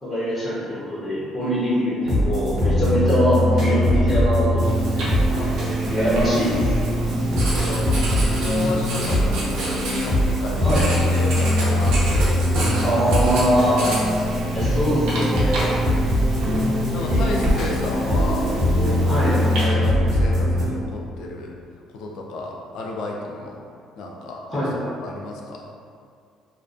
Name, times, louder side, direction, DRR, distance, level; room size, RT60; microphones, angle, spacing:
voice 1, 0.0-5.1 5.6-6.6 10.6-10.8 12.8-13.8 14.5-15.7 16.9-17.6 19.1-19.3 24.5-24.7, equal, 10° left, -12 dB, 0.5 m, -23 dB
sound 1, 2.0-20.6, equal, 45° right, 0.8 m, -21 dB
Writing, 4.6-19.6, right 1 dB, 85° right, 0.6 m, -30 dB
voice 2, 5.3-5.7 7.5-13.0 16.9-21.5 21.9-23.6 24.0-24.4 25.0-25.6, left 2 dB, 65° left, 0 dB, 0.3 m, -32 dB
2.4 x 2.2 x 2.3 m, 2.3 s
cardioid pair, 170°, 0 cm